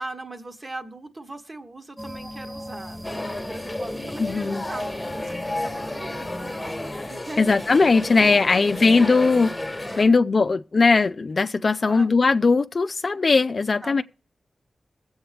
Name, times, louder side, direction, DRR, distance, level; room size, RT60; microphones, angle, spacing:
voice 1, 0.0-6.6 7.1-7.6 8.2-9.0 9.9-10.2 11.8-12.2 13.8-14.0, right 2 dB, 30° right, 1.3 m, -40 dB
sound 1, 2.0-7.1, equal, 5° right, 0.5 m, -39 dB
sound 2, 3.0-10.0, left 1 dB, 15° left, 1.3 m, -32 dB
voice 2, 4.2-4.6 7.4-9.5 10.0-14.0, left 4 dB, 50° left, 0.4 m, -19 dB
21.5 x 7.9 x 3.4 m
wide cardioid pair, 85°, 0 cm